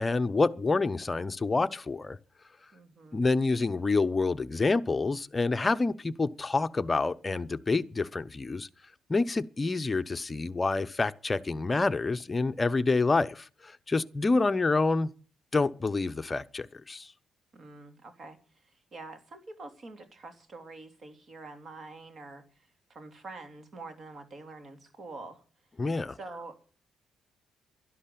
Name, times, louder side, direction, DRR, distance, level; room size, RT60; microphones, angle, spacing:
voice 1, 0.0-2.2 3.1-8.7 9.1-15.1 15.5-17.1 25.8-26.2, left 3 dB, 25° left, 0.8 m, -27 dB
voice 2, 2.7-3.2 17.5-25.4 26.2-26.5, right 3 dB, 45° right, 3.1 m, -46 dB
12.0 x 11.5 x 8.5 m
cardioid pair, 90°, 0 cm